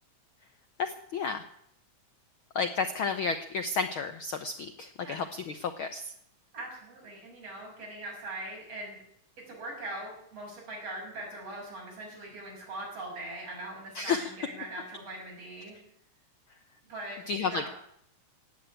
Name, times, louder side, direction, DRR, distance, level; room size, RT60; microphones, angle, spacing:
voice 1, 0.8-1.4 2.5-6.0 14.0-14.3 17.3-17.7, left 5 dB, 85° left, 9 dB, 1.1 m, -31 dB
voice 2, 6.5-9.0 9.5-15.8 16.8-17.7, right 1 dB, 50° right, -2 dB, 7.7 m, -41 dB
18.0 x 8.6 x 8.9 m, 0.72 s
omnidirectional pair, 3.6 m